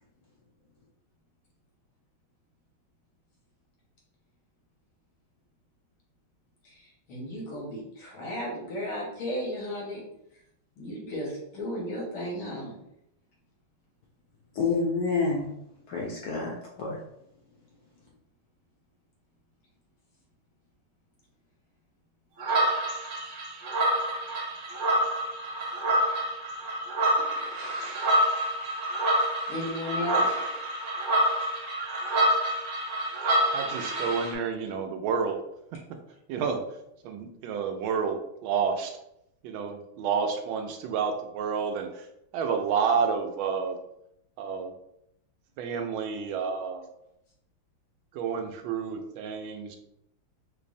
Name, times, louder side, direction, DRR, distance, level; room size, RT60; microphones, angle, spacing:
voice 1, 6.6-10.0 10.8-12.8 29.1-30.3, equal, 90° left, -4 dB, 2.1 m, -35 dB
voice 2, 14.6-15.5 15.9-17.0, left 4 dB, 75° left, -2 dB, 0.9 m, -28 dB
sound 1, 22.4-34.3, right 1 dB, 50° right, 0.9 m, -27 dB
voice 3, 33.5-35.4 36.3-36.6 37.0-38.9 39.4-42.0 42.3-43.8 44.4-44.7 45.6-46.9 48.1-49.8, right 6 dB, 85° right, 4 dB, 1.4 m, -29 dB
5.4 x 2.0 x 2.6 m, 0.78 s
omnidirectional pair, 2.2 m